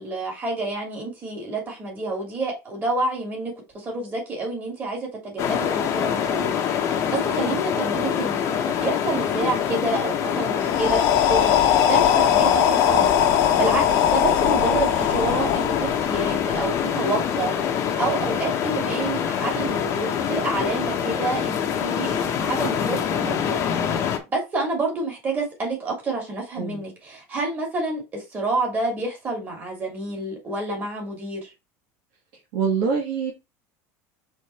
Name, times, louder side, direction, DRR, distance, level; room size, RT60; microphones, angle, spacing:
voice 1, 0.0-17.5 17.9-23.6 23.9-24.0 24.3-31.5, right 2 dB, 20° right, 3.1 m, -28 dB
sound 1, 5.4-24.2, left 8 dB, 35° left, 1.2 m, -25 dB
sound 2, 10.7-16.6, left 10 dB, 65° left, 1.1 m, -21 dB
voice 2, 32.5-33.3, right 6 dB, 60° right, 2.0 m, -24 dB
5.1 x 4.3 x 4.4 m
cardioid pair, 155°, 8 cm